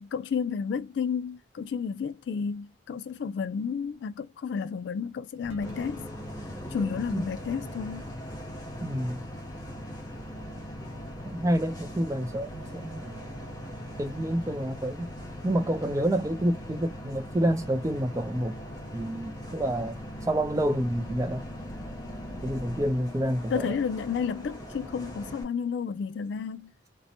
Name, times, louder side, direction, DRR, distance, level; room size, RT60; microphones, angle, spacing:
voice 1, 0.0-6.1 6.7-8.1 23.5-26.7, left 6 dB, 70° left, 0.3 m, -31 dB
sound 1, 5.4-22.9, left 1 dB, 90° left, 1.1 m, -43 dB
Bus, 5.6-25.4, equal, 20° left, 0.7 m, -42 dB
voice 2, 8.8-9.2 11.2-13.3 14.0-15.1 15.4-18.5 18.9-20.0 20.3-21.4 22.4-23.8, right 1 dB, 15° right, 0.4 m, -28 dB
2.7 x 2.1 x 2.6 m
head